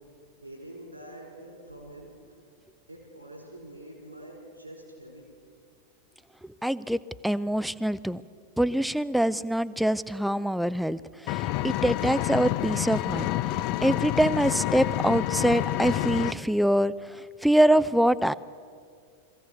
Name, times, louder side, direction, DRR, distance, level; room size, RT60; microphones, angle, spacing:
voice 1, 0.4-2.3 2.9-5.3, right 1 dB, 85° right, 1 dB, 5.1 m, -45 dB
voice 2, 6.6-8.2 8.6-13.3 13.8-18.3, right 1 dB, ahead, 16 dB, 0.5 m, -24 dB
Engine, 11.3-16.3, left 15 dB, 45° left, 0.5 m, -28 dB
22.5 x 16.0 x 8.2 m, 2.2 s
figure-of-eight pair, 90°, 0 cm